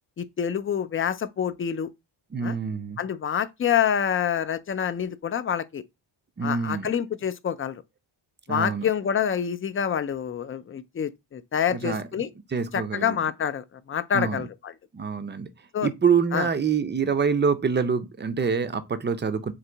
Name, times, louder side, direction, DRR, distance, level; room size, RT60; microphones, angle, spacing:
voice 1, 0.2-1.9 2.4-2.5 3.0-5.8 6.4-7.8 8.5-12.3 12.7-14.7 15.7-15.9 16.3-16.5, left 8 dB, 30° left, 0.4 m, -27 dB
voice 2, 2.3-3.0 6.4-6.9 8.5-8.9 11.7-12.3 12.5-13.2 14.1-14.5 14.9-15.5 15.8-19.5, right 6 dB, 25° right, 0.5 m, -26 dB
3.9 x 2.7 x 4.4 m
cardioid pair, 100°, 48 cm